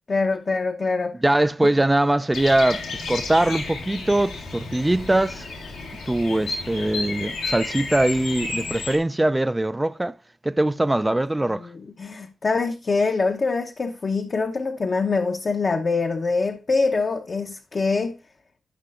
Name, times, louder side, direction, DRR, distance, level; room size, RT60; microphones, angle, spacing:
voice 1, 0.1-1.2 11.5-18.1, left 4 dB, 50° left, 0.8 m, -24 dB
voice 2, 1.2-5.4 6.1-10.1 10.4-11.7, right 1 dB, 20° right, 0.4 m, -22 dB
Bird vocalization bird call bird song, 2.3-9.0, left 3 dB, 90° left, 1.8 m, -32 dB
13.5 x 5.6 x 2.5 m
supercardioid pair, 40°, 0 cm